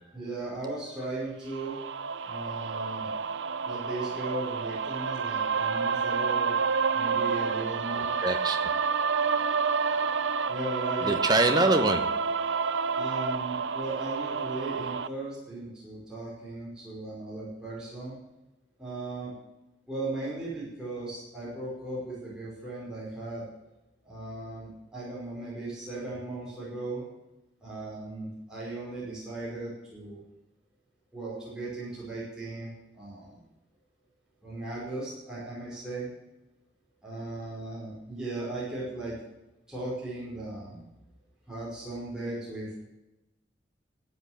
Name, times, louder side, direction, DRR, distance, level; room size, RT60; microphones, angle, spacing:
voice 1, 0.1-1.8 2.2-3.1 3.6-6.5 6.9-8.1 10.5-11.3 13.0-18.1 18.8-19.3 19.9-23.4 24.0-27.0 27.6-30.2 31.1-33.3 34.4-36.1 37.0-39.2 39.7-40.9 41.5-42.7, right 2 dB, 5° right, -8 dB, 5.3 m, -37 dB
sound 1, 1.5-15.1, right 5 dB, 85° right, 0.6 m, -29 dB
voice 2, 8.0-8.7 11.0-12.3, right 2 dB, 20° right, 6 dB, 1.1 m, -25 dB
13.5 x 8.2 x 8.9 m, 0.98 s
head